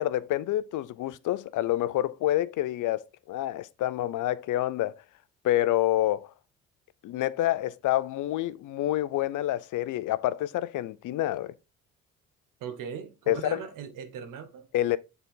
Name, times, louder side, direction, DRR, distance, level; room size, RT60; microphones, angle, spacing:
voice 1, 0.0-5.0 5.4-6.3 7.0-11.5 13.3-13.6 14.7-15.0, left 14 dB, 65° left, 0.6 m, -28 dB
voice 2, 12.6-14.7, right 7 dB, 65° right, 1.3 m, -39 dB
7.2 x 4.1 x 3.8 m
supercardioid pair, 65°, 34 cm